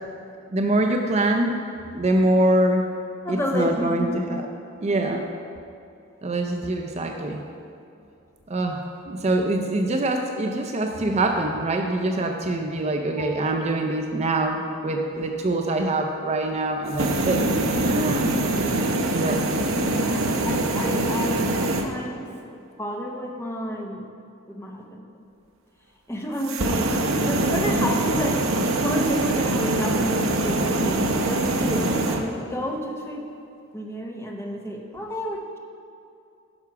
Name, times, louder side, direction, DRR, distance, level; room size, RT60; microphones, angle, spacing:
voice 1, 0.5-1.5 1.9-2.9 3.3-4.4 4.8-5.2 6.2-7.4 8.5-17.4 17.8-18.3 19.1-19.4, right 2 dB, 30° right, 3 dB, 0.4 m, -24 dB
voice 2, 3.2-4.2 13.2-13.3 15.2-15.3 19.8-24.0 24.5-25.0 26.1-28.4 28.8-33.2 33.7-35.6, equal, 10° left, 0 dB, 0.8 m, -30 dB
sound 1, 16.9-21.9 26.4-32.2, right 2 dB, 65° right, 0.7 m, -24 dB
10.5 x 5.9 x 4.7 m, 2.6 s
head